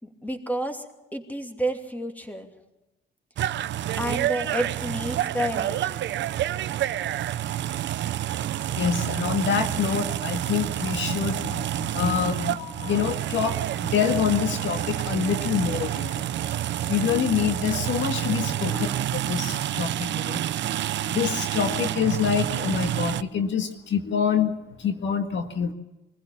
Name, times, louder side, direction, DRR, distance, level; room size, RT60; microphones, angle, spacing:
voice 1, 0.0-2.5 4.0-6.0 18.4-18.9, right 1 dB, 10° left, 4 dB, 2.8 m, -31 dB
sound 1, 3.4-23.2, right 12 dB, 65° right, 0.7 m, -28 dB
voice 2, 8.8-16.3 16.9-20.4 21.0-25.7, left 7 dB, 70° left, 6 dB, 1.8 m, -26 dB
24.0 x 15.5 x 7.2 m, 1.0 s
cardioid pair, 90°, 20 cm